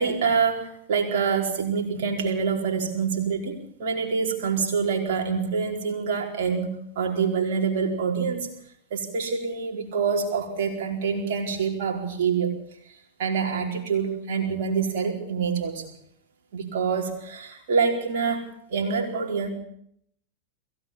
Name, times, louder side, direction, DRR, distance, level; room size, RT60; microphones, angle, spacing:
voice 1, 0.0-8.5 8.9-12.6 13.2-15.9 16.5-19.5, right 5 dB, 55° right, 0 dB, 4.5 m, -26 dB
22.0 x 17.0 x 7.3 m, 0.68 s
figure-of-eight pair, 90°, 0 cm